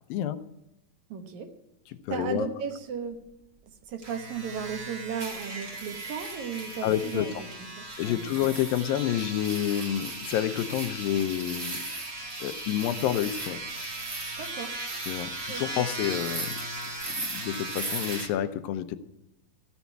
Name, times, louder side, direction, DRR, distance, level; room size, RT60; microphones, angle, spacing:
voice 1, 1.1-1.5 2.1-3.2 3.9-8.2 14.4-14.7 15.5-15.8, right 6 dB, 65° right, 6 dB, 2.1 m, -35 dB
voice 2, 2.1-2.5 6.8-7.3 8.0-11.8 12.4-13.6 15.1-19.0, left 11 dB, 80° left, 11 dB, 2.3 m, -29 dB
sound 1, 4.0-18.3, right 2 dB, 35° right, 1.6 m, -36 dB
14.0 x 7.2 x 9.3 m, 0.89 s
omnidirectional pair, 4.3 m